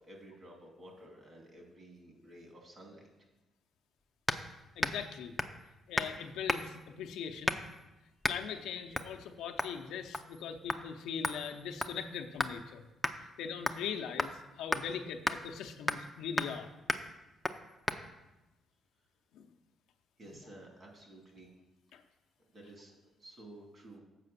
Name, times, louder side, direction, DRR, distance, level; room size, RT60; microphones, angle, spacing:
voice 1, 0.0-3.1 20.2-21.5 22.5-24.0, right 1 dB, 40° right, 1 dB, 2.3 m, -53 dB
sound 1, 4.3-4.5 4.8-5.1 5.4-5.6 6.0-6.2 6.5-6.8 7.5-7.8 8.2-8.4 8.9-9.1 9.6-9.8 10.1-10.4 10.7-10.8 11.2-12.6 13.0-13.2 13.7-13.9 14.2-14.3 14.7-14.8 15.3-15.4 15.9-16.1 16.4-16.6 16.9-17.1 17.4-17.6 17.9-18.0, left 1 dB, 5° left, 0.5 m, -34 dB
voice 2, 4.8-5.3 5.9-7.6 8.3-12.9 13.4-16.7 19.3-19.4 21.9-22.0, left 7 dB, 85° left, 5 dB, 0.6 m, -40 dB
7.5 x 4.9 x 6.7 m, 1.0 s
cardioid pair, 90°, 0 cm